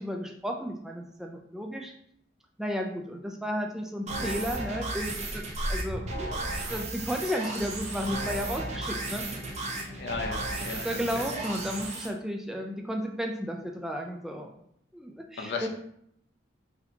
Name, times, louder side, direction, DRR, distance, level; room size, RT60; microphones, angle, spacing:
voice 1, 0.0-1.9 2.6-6.0 6.7-9.2 10.7-14.5 14.9-15.7, equal, 5° right, 2 dB, 0.3 m, -33 dB
sound 1, 4.1-12.1, right 2 dB, 35° right, 0.6 m, -35 dB
sound 2, 5.0-7.6, equal, 65° right, 0.8 m, -37 dB
voice 2, 10.0-11.3 15.4-15.7, left 4 dB, 65° left, 3 dB, 0.5 m, -35 dB
4.1 x 2.8 x 2.8 m, 0.70 s
head